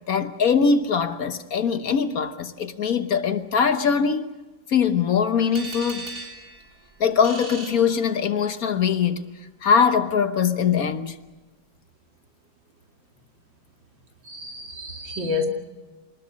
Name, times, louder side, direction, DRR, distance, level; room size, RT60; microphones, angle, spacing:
voice 1, 0.1-4.3 4.7-6.1 7.0-9.3 9.6-11.2, left 6 dB, 55° left, 1.4 m, -22 dB
sound 1, 5.5-8.6, right 2 dB, 45° right, 4.0 m, -39 dB
voice 2, 14.3-15.5, left 4 dB, 85° right, 3.1 m, -29 dB
26.0 x 20.5 x 6.4 m
omnidirectional pair, 2.0 m